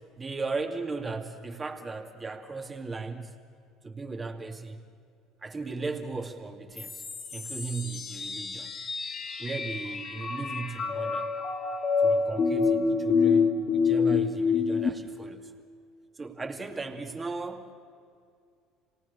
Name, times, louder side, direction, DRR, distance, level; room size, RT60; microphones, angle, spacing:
voice 1, 0.2-3.4 3.8-4.8 5.4-7.0 7.3-8.7 9.4-11.3 12.0-15.5 16.2-17.7, right 4 dB, 25° right, 4 dB, 2.5 m, -36 dB
sound 1, 6.8-14.9, left 5 dB, 40° left, 2.0 m, -27 dB
26.5 x 18.5 x 6.8 m, 2.3 s
hypercardioid pair, 70°, 0 cm